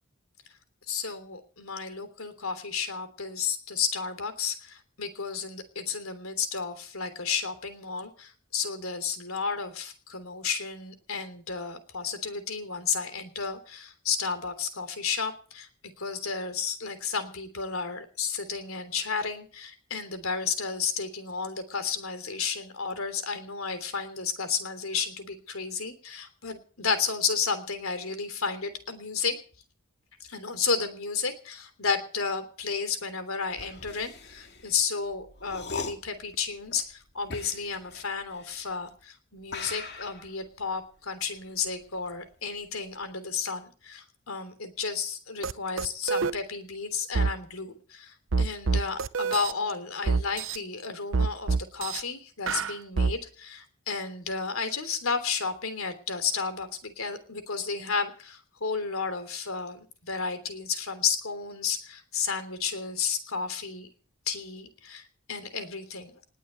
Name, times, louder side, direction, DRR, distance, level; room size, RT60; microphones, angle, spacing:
voice 1, 0.9-15.7 16.0-29.4 30.2-63.9 64.3-66.2, left 5 dB, 85° left, 10 dB, 3.3 m, -32 dB
sound 1, 33.5-39.0 39.4-42.3 42.6-43.1, left 4 dB, 50° left, 2.4 m, -42 dB
sound 2, 45.4-45.5 45.8-46.3 47.1-47.3 48.3-49.5 50.1-50.6 51.1-52.0 52.5-53.1, right 4 dB, 65° right, 0.7 m, -26 dB
20.0 x 7.9 x 8.2 m, 0.41 s
head